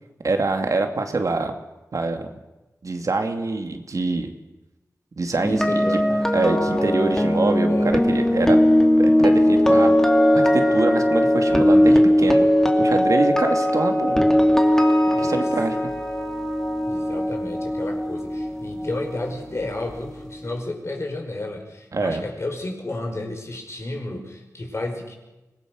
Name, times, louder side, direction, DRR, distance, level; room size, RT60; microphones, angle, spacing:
voice 1, 0.2-1.6 1.9-2.3 2.8-4.3 5.2-6.0 6.3-8.6 9.0-12.5 12.8-14.2 15.2-15.9 21.9-22.2, right 3 dB, 65° right, 5 dB, 2.4 m, -25 dB
voice 2, 5.4-6.1 7.7-7.9 15.1-15.5 16.8-25.1, left 2 dB, 50° left, 2 dB, 5.5 m, -32 dB
sound 1, 5.4-19.5 19.7-20.0, equal, 10° left, 2.5 m, -19 dB
25.0 x 19.0 x 6.3 m, 1.0 s
wide cardioid pair, 70°, 6 cm